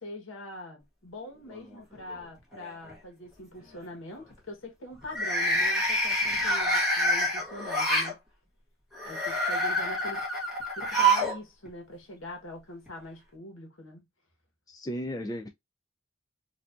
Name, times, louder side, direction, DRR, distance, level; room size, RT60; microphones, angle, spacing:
voice 1, 0.0-8.2 9.0-10.2 10.8-14.0, left 1 dB, 70° left, 1.3 m, -43 dB
sound 1, 1.5-2.1 2.5-2.9 5.0-8.1 8.9-11.4 11.7-11.8 12.9-13.0, right 1 dB, ahead, 1.4 m, -27 dB
voice 2, 14.7-15.5, equal, 20° left, 0.4 m, -35 dB
4.5 x 2.7 x 2.5 m
head